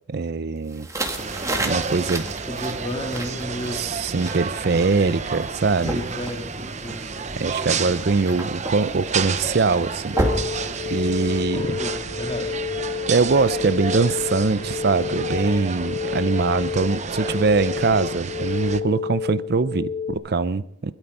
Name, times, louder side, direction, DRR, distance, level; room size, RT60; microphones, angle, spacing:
voice 1, 0.1-0.9 1.6-2.2 3.7-5.9 7.4-10.2 10.9-11.6 13.1-20.9, right 4 dB, 55° right, 15 dB, 0.5 m, -22 dB
sound 1, 0.7-11.4, right 1 dB, 15° right, 2.0 m, -32 dB
sound 2, 1.2-18.8, right 5 dB, 35° right, 0.9 m, -31 dB
voice 2, 2.4-3.9 5.8-7.2 11.5-12.6, equal, 30° left, 2 dB, 3.0 m, -32 dB
sound 3, 10.1-20.1, left 6 dB, 65° left, 1.6 m, -30 dB
21.5 x 12.5 x 5.4 m, 0.71 s
head